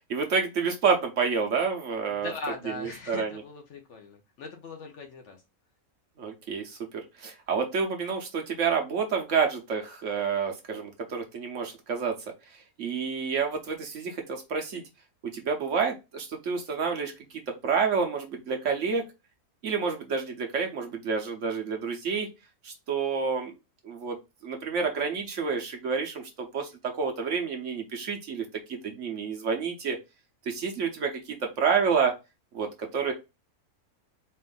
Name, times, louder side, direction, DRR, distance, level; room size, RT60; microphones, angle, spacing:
voice 1, 0.1-2.3 2.8-3.4 6.2-12.2 12.8-14.8 15.3-17.1 17.6-19.1 19.6-22.3 22.6-23.5 23.8-24.2 24.4-30.0 30.5-32.1 32.5-33.1, right 5 dB, 60° right, 3 dB, 1.0 m, -29 dB
voice 2, 2.1-5.4, left 3 dB, 60° left, 4 dB, 0.9 m, -40 dB
4.3 x 2.5 x 3.8 m, 0.25 s
omnidirectional pair, 1.6 m